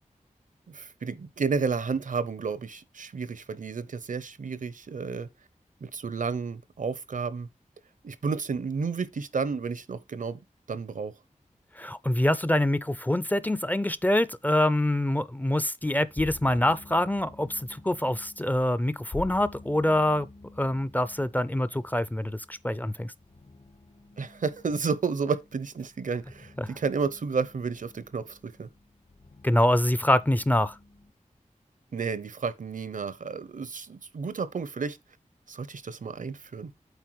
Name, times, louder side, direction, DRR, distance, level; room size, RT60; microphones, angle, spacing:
voice 1, 0.7-5.3 5.8-7.5 8.0-10.4 10.7-11.1 24.2-28.7 31.9-35.0 35.5-36.7, right 5 dB, 75° right, 0.7 m, -31 dB
voice 2, 11.8-20.3 20.6-23.1 26.6-26.7 29.4-30.8, left 1 dB, 10° left, 0.4 m, -25 dB
sound 1, 16.0-31.1, left 3 dB, 60° left, 1.5 m, -49 dB
8.2 x 4.1 x 4.7 m
wide cardioid pair, 85°, 13 cm